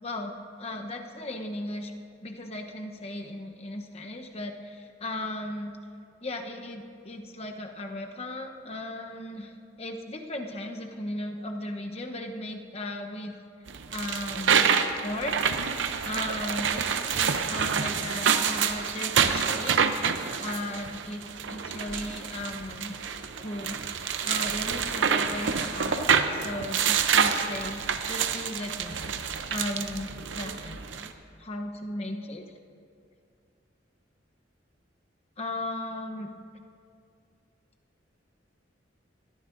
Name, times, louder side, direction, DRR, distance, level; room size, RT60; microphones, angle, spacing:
voice 1, 0.0-1.9 2.2-5.7 6.2-9.5 9.8-13.3 13.9-15.4 16.0-19.8 20.4-22.9 23.4-23.8 24.2-29.1 29.5-31.1 31.4-32.4 35.4-36.3, left 1 dB, 35° left, 3 dB, 0.9 m, -36 dB
sound 1, 13.7-31.1, right 6 dB, 90° right, 0.7 m, -27 dB
21.5 x 14.0 x 2.6 m, 2.4 s
head